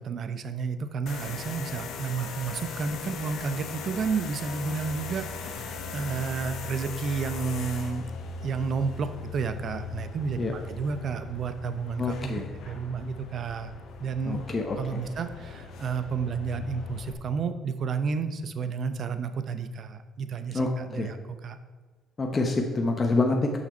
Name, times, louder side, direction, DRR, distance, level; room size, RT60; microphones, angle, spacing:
voice 1, 0.0-8.1 8.4-13.7 14.0-14.4 14.8-21.6, right 5 dB, 55° right, 10 dB, 0.6 m, -31 dB
sound 1, 1.1-17.1, left 5 dB, 70° left, 0.9 m, -39 dB
voice 2, 12.0-12.5 14.3-15.0 20.5-20.7 21.0-21.1 22.2-23.6, left 3 dB, 35° left, 1 dB, 1.0 m, -26 dB
6.7 x 5.7 x 4.4 m, 1.3 s
supercardioid pair, 70°, 0 cm